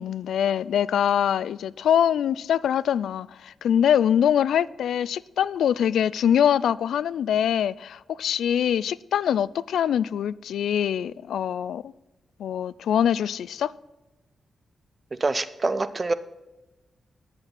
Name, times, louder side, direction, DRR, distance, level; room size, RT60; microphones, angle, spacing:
voice 1, 0.0-11.9 12.4-13.7, left 9 dB, 90° left, 0.3 m, -23 dB
voice 2, 15.2-16.1, right 3 dB, 35° right, 0.7 m, -25 dB
10.5 x 7.7 x 5.8 m
cardioid pair, 85°, 0 cm